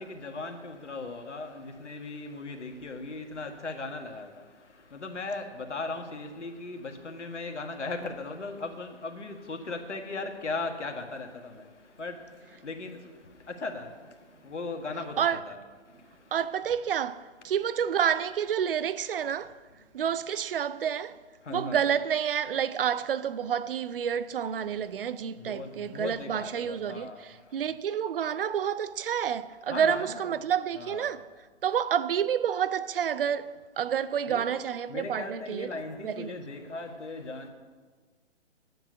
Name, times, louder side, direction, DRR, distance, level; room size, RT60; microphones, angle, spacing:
voice 1, 0.0-15.6 15.9-16.3 21.4-21.8 25.4-27.6 29.7-30.3 30.7-31.2 34.3-34.4 34.9-37.5, left 3 dB, 75° left, 1.7 m, -38 dB
voice 2, 16.3-19.5 19.9-21.2 21.5-31.2 31.6-36.4, right 8 dB, 50° right, 0.6 m, -29 dB
9.5 x 7.7 x 9.5 m
figure-of-eight pair, 135°, 35 cm